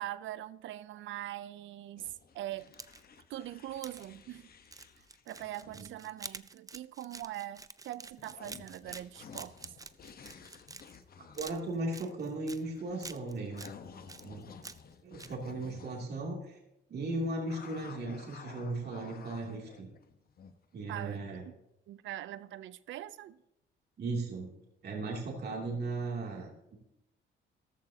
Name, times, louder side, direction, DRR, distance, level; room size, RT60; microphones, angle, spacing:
voice 1, 0.0-2.7 3.3-4.5 5.3-9.8 20.9-21.5 21.9-23.4, right 13 dB, 75° right, 0.6 m, -42 dB
sound 1, 2.0-5.9 8.2-16.0 17.5-20.6, left 6 dB, 50° left, 1.1 m, -53 dB
sound 2, 2.6-3.2 3.8-4.1 4.7-11.0 11.3-12.6 13.0-13.7 14.1-14.9 15.2-15.3, right 4 dB, 15° right, 0.5 m, -48 dB
voice 2, 11.4-13.7 14.2-14.4 15.0-16.6 16.9-19.9 20.7-21.4 24.0-24.5 24.8-26.8, right 2 dB, 55° right, 2.8 m, -37 dB
13.5 x 13.0 x 2.8 m
cardioid pair, 90°, 20 cm